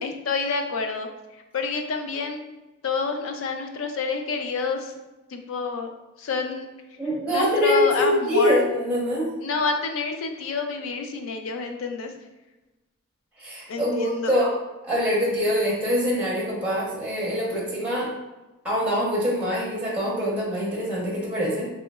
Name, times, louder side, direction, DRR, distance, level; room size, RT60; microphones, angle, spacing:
voice 1, 0.0-1.1 1.5-2.4 2.8-4.9 5.3-5.9 6.2-6.7 7.3-8.6 9.4-12.1 13.7-14.4, left 4 dB, 80° left, 5 dB, 0.4 m, -28 dB
voice 2, 7.0-9.3 13.4-14.5 14.8-18.1 18.6-21.7, equal, 5° right, -6 dB, 0.8 m, -24 dB
3.1 x 3.0 x 2.2 m, 1.1 s
head